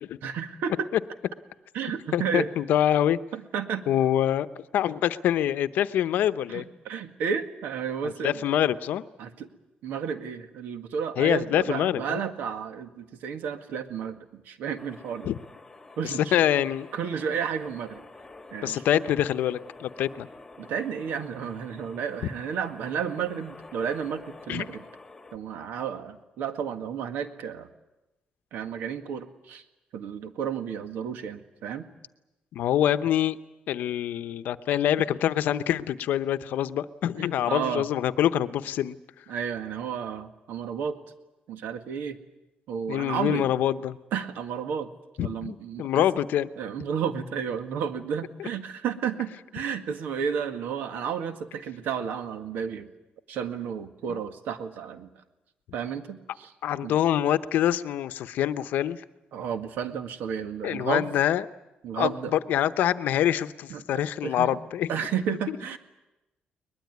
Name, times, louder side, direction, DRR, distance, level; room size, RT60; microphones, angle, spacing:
voice 1, 0.2-0.9 1.7-2.5 3.3-3.8 6.5-8.4 9.2-9.5 9.8-15.3 16.0-16.4 16.9-18.0 18.5-18.8 20.6-24.8 25.3-27.7 28.5-29.6 29.9-31.9 37.2-37.9 39.3-41.0 41.5-42.2 42.7-43.4 44.1-44.9 45.2-46.0 46.6-52.9 53.3-55.1 55.7-56.5 56.8-56.9 59.3-61.1 61.8-62.3 63.7-64.5 64.9-65.8, right 7 dB, 75° right, 7 dB, 2.0 m, -32 dB
voice 2, 2.1-3.2 3.9-4.5 4.7-6.7 8.0-9.0 11.2-12.2 15.3-15.4 16.0-16.9 18.6-20.3 24.5-24.6 32.5-33.4 33.7-39.0 42.9-44.0 45.2-46.5 48.4-48.5 54.1-54.2 56.6-59.0 60.6-61.4 62.0-64.9, left 11 dB, 65° left, 12 dB, 0.8 m, -25 dB
sound 1, 14.8-25.4, left 3 dB, 10° left, 1.5 m, -48 dB
22.5 x 20.5 x 9.5 m, 0.97 s
cardioid pair, 180°, 3 cm